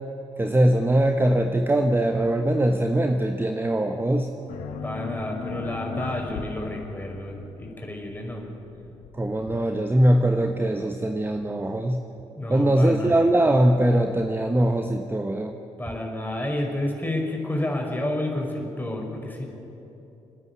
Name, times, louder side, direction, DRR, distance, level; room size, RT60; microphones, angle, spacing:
voice 1, 0.4-4.3 9.1-12.0 12.5-15.5, right 1 dB, 15° right, 5 dB, 1.2 m, -21 dB
sound 1, 4.5-9.6, left 6 dB, 70° left, 1.4 m, -37 dB
voice 2, 4.8-8.4 12.3-13.2 15.8-19.5, left 1 dB, 15° left, 0 dB, 5.3 m, -30 dB
27.5 x 9.7 x 9.7 m, 3.0 s
hypercardioid pair, 45°, 15 cm